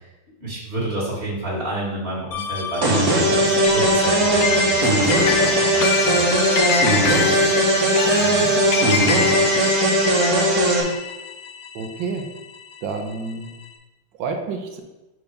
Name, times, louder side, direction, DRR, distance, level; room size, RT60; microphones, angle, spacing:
voice 1, 0.4-6.4, right 1 dB, 30° right, -8 dB, 2.2 m, -30 dB
sound 1, 2.3-12.9, left 5 dB, 70° left, 0.8 m, -26 dB
sound 2, 2.8-10.8, right 1 dB, 50° right, 1.7 m, -18 dB
voice 2, 8.2-8.5 11.7-12.2 12.8-13.5 14.2-14.8, right 4 dB, 70° right, 4 dB, 1.5 m, -29 dB
5.0 x 4.6 x 5.3 m, 1.1 s
omnidirectional pair, 2.2 m